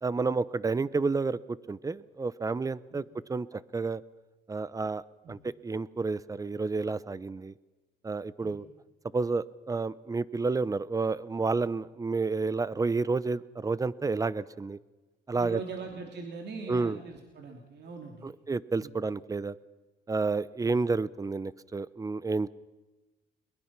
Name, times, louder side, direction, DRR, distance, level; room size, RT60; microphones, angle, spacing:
voice 1, 0.0-3.0 3.3-4.0 4.5-5.0 5.3-7.5 8.0-8.6 9.1-14.8 15.3-15.6 16.7-17.0 18.2-19.5 20.1-22.5, right 4 dB, 20° right, 19 dB, 0.7 m, -30 dB
voice 2, 15.4-18.3 18.8-18.9 20.6-20.7, right 4 dB, 60° right, 3 dB, 2.9 m, -41 dB
22.5 x 22.0 x 6.0 m, 1.2 s
cardioid pair, 120°, 19 cm